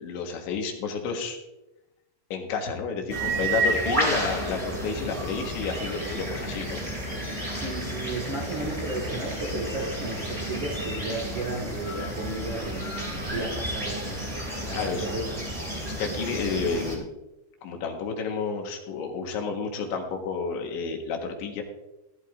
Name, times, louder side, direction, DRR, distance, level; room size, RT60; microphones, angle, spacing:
voice 1, 0.0-1.4 2.3-6.8 13.3-13.5 14.8-15.1 15.8-17.1 17.6-21.6, left 5 dB, 70° left, 2 dB, 3.7 m, -31 dB
sound 1, 3.1-16.9, right 1 dB, 65° right, 0.3 m, -31 dB
voice 2, 7.5-14.3 14.7-15.2, right 2 dB, 85° right, -1 dB, 1.0 m, -34 dB
16.0 x 12.0 x 2.6 m, 0.96 s
omnidirectional pair, 5.7 m